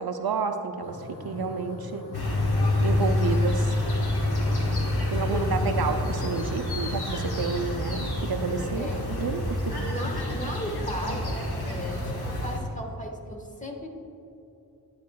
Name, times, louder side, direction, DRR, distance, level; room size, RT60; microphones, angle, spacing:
voice 1, 0.0-2.1 2.8-3.8 5.1-9.7, right 5 dB, 65° right, 7 dB, 0.6 m, -30 dB
sound 1, 0.8-11.3, left 2 dB, 50° left, 1.6 m, -40 dB
sound 2, 2.1-12.6, left 1 dB, 70° left, 1.3 m, -27 dB
voice 2, 5.3-5.8 8.7-9.2 9.6-13.9, equal, 20° left, 1 dB, 1.1 m, -36 dB
10.5 x 9.3 x 2.3 m, 2.8 s
wide cardioid pair, 55°, 40 cm